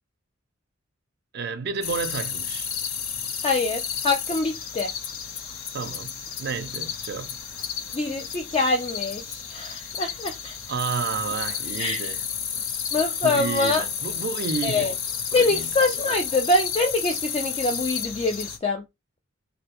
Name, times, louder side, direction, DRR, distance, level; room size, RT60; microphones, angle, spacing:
voice 1, 1.3-2.7 5.7-7.4 10.7-12.2 13.2-14.9 15.3-15.7, right 5 dB, 55° right, 0.5 m, -31 dB
sound 1, 1.8-18.6, left 7 dB, 80° left, 0.5 m, -32 dB
voice 2, 3.4-4.9 7.9-10.6 11.8-12.0 12.9-13.8 14.6-14.9 15.3-18.8, left 2 dB, 30° left, 0.4 m, -24 dB
3.2 x 2.6 x 2.9 m
head